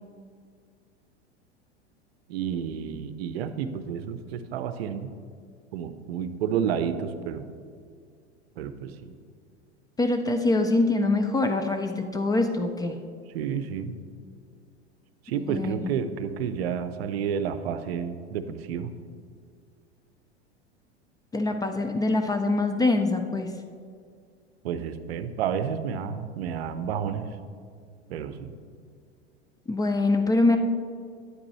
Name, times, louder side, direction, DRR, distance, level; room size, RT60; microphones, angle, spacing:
voice 1, 2.3-5.1 5.7-7.5 8.6-9.1 13.3-14.0 15.3-18.9 24.6-27.3 28.1-28.6, right 8 dB, 65° right, 11 dB, 0.6 m, -30 dB
voice 2, 10.0-12.9 15.5-15.7 21.3-23.5 29.7-30.6, left 2 dB, 10° left, 6 dB, 0.4 m, -24 dB
9.7 x 8.5 x 3.1 m, 2.2 s
hypercardioid pair, 90°, 34 cm